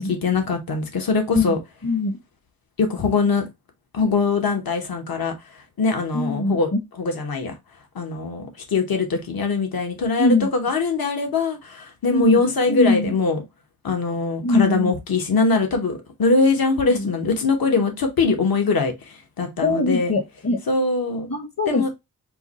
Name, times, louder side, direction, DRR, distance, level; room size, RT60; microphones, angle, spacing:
voice 1, 0.1-1.6 2.8-3.5 3.9-6.7 7.0-7.6 7.9-13.4 13.8-20.1 20.7-21.3 21.7-21.9, left 4 dB, 70° left, 1.1 m, -22 dB
voice 2, 1.8-2.2 6.1-6.6 10.2-10.5 12.1-12.3 12.7-13.1 14.4-14.9 17.0-17.1 19.6-20.6 21.3-21.9, left 3 dB, 45° left, 1.0 m, -22 dB
4.5 x 2.2 x 4.0 m
wide cardioid pair, 75°, 37 cm